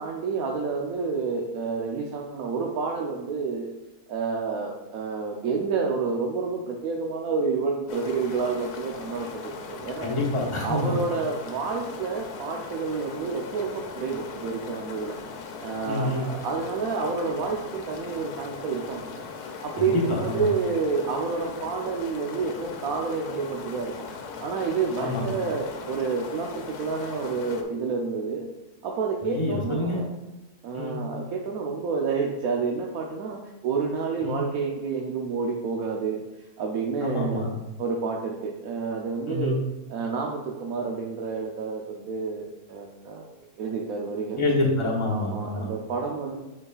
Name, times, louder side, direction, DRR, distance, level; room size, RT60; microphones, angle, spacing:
voice 1, 0.0-3.7 4.1-10.1 10.6-15.2 15.6-19.3 19.6-24.1 24.4-28.5 28.8-30.1 30.6-36.2 36.6-37.4 37.8-39.6 39.9-43.2 43.6-44.4 45.1-46.4, right 4 dB, 70° right, 0 dB, 1.1 m, -29 dB
sound 1, 7.9-27.6, left 5 dB, 80° left, 1.3 m, -39 dB
voice 2, 10.0-10.9 15.8-16.3 19.8-20.5 25.0-25.2 29.2-30.0 30.7-31.0 34.2-34.4 37.0-37.5 39.3-39.6 44.4-45.7, left 2 dB, 20° left, -3 dB, 1.0 m, -27 dB
8.2 x 5.3 x 2.4 m, 1.0 s
omnidirectional pair, 1.7 m